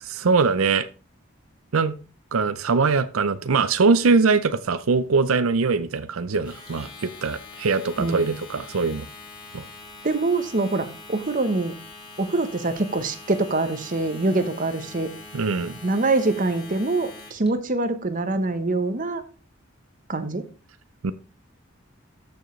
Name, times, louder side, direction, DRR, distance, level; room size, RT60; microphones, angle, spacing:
voice 1, 0.0-0.9 1.7-1.9 2.3-9.1 9.5-9.7 15.3-15.8 21.0-21.1, right 4 dB, 90° right, 0.6 m, -22 dB
Domestic sounds home sounds, 6.3-17.5, left 3 dB, 20° left, 2.8 m, -43 dB
voice 2, 8.0-8.3 10.0-11.7 12.2-15.1 15.8-19.2 20.1-20.4, right 2 dB, 40° right, 1.0 m, -24 dB
13.5 x 6.3 x 3.2 m
head